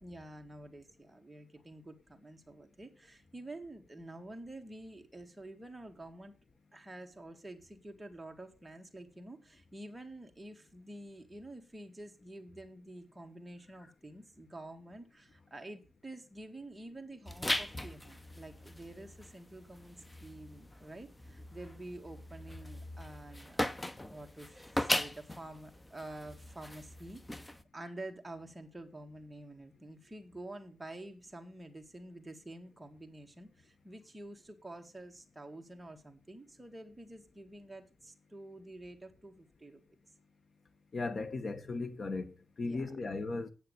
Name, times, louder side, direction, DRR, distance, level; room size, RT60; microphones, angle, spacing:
voice 1, 0.0-6.3 6.7-23.8 24.1-39.8 42.6-42.9, right 1 dB, 10° right, 2.0 m, -49 dB
sound 1, 17.3-27.6, left 1 dB, 10° left, 0.8 m, -39 dB
voice 2, 40.9-43.5, left 3 dB, 45° left, 1.3 m, -37 dB
9.6 x 7.9 x 8.1 m
wide cardioid pair, 125°, 0 cm